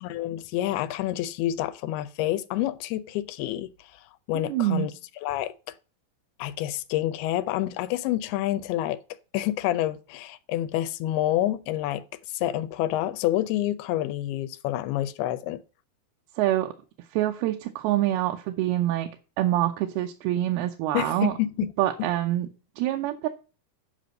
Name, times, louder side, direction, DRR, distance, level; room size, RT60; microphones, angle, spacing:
voice 1, 0.0-4.9 5.2-5.5 6.4-9.0 9.3-15.6 20.9-21.7 22.0-22.1, left 14 dB, 85° left, 2.6 m, -28 dB
voice 2, 4.3-4.9 16.4-16.7 17.1-19.1 19.4-21.3 21.8-22.5 22.8-23.3, right 13 dB, 85° right, 2.7 m, -25 dB
8.2 x 5.3 x 7.6 m
omnidirectional pair, 4.4 m